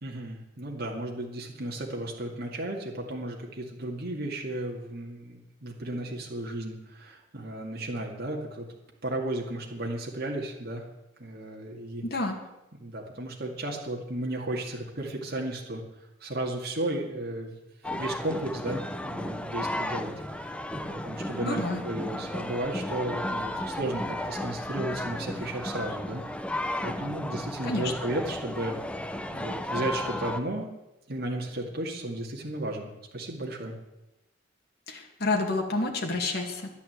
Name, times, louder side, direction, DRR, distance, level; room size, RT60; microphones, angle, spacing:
voice 1, 0.0-8.7 9.0-10.8 11.2-12.0 12.8-15.8 16.2-17.5 17.9-26.2 26.5-28.8 29.3-30.7 31.1-33.7, right 1 dB, 55° right, -1 dB, 2.2 m, -34 dB
voice 2, 12.0-12.4 21.4-21.8 27.6-27.9 34.9-36.7, left 2 dB, 55° left, 1 dB, 2.3 m, -29 dB
sound 1, 17.8-30.4, left 1 dB, 5° left, 0.7 m, -34 dB
12.5 x 10.5 x 8.1 m, 0.94 s
head